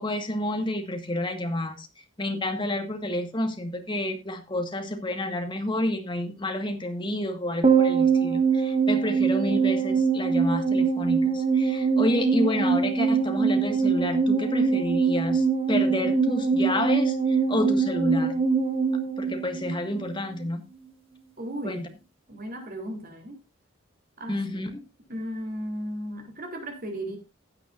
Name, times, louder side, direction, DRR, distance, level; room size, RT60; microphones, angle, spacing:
voice 1, 0.0-1.9 2.2-18.4 19.2-20.6 21.6-21.8 24.3-24.8, left 1 dB, 25° left, 1.6 m, -30 dB
sound 1, 7.6-20.2 20.4-20.5, right 5 dB, 30° right, 1.7 m, -23 dB
voice 2, 21.4-21.9 22.3-23.4 24.2-24.6 25.1-27.2, equal, 45° right, 3.3 m, -35 dB
15.5 x 9.4 x 2.5 m
head